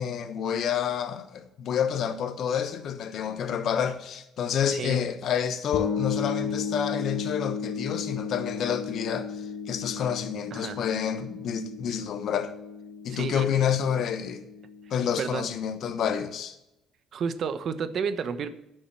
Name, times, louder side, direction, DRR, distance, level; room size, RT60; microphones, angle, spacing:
voice 1, 0.0-12.5 13.0-14.4 14.9-16.6, left 8 dB, 65° left, 1.1 m, -29 dB
sound 1, 5.7-15.3, left 5 dB, 80° left, 2.7 m, -35 dB
voice 2, 10.5-10.8 13.1-13.5 15.2-15.5 17.1-18.5, right 6 dB, 55° right, 1.0 m, -31 dB
10.0 x 6.5 x 8.8 m
cardioid pair, 100°, 0 cm